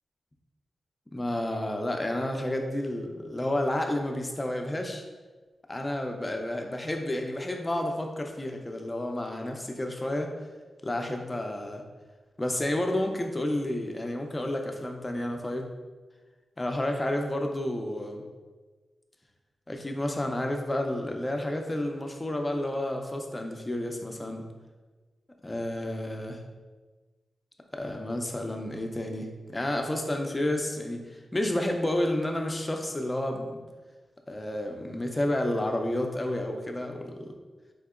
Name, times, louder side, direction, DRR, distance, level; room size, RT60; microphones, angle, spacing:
voice 1, 1.1-5.0 5.7-10.3 10.8-11.8 12.4-15.7 16.6-18.2 19.7-24.4 25.4-26.4 27.7-31.0 31.3-33.6 34.3-37.3, left 1 dB, 20° left, 3 dB, 0.4 m, -30 dB
4.2 x 2.7 x 2.4 m, 1.3 s
wide cardioid pair, 110°, 0 cm